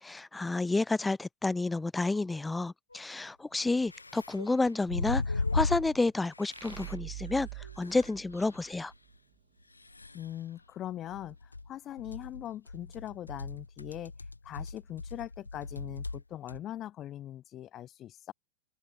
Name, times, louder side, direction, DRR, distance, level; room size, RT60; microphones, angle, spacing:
voice 1, 0.0-7.5 7.8-8.9, left 3 dB, 10° left, 0.4 m, -30 dB
sound 1, 2.9-3.0 3.9-6.0 6.3-7.0 7.3-7.4 7.6-8.6 8.9-9.0 9.8-10.3 11.1-11.7 12.0-16.2 16.5-16.6, left 3 dB, 80° left, 1.2 m, -37 dB
sound 2, 6.5-9.1, right 21 dB, 50° right, 7.7 m, -44 dB
voice 2, 10.1-14.1 14.4-18.3, left 12 dB, 30° left, 1.3 m, -41 dB
open air
figure-of-eight pair, 90°, 0 cm